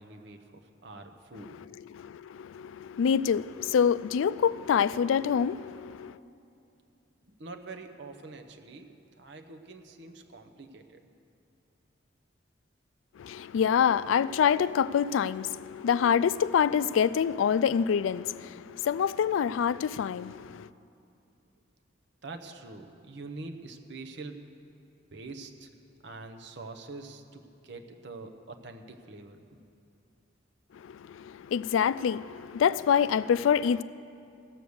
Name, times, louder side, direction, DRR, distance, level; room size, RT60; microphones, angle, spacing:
voice 1, 0.0-1.6 7.4-11.0 22.2-24.5 25.1-25.7 26.0-29.6, right 3 dB, 65° right, 0.9 m, -45 dB
voice 2, 1.9-6.2 13.2-20.7 30.7-33.8, left 7 dB, 90° left, 0.3 m, -26 dB
16.5 x 6.5 x 6.9 m
head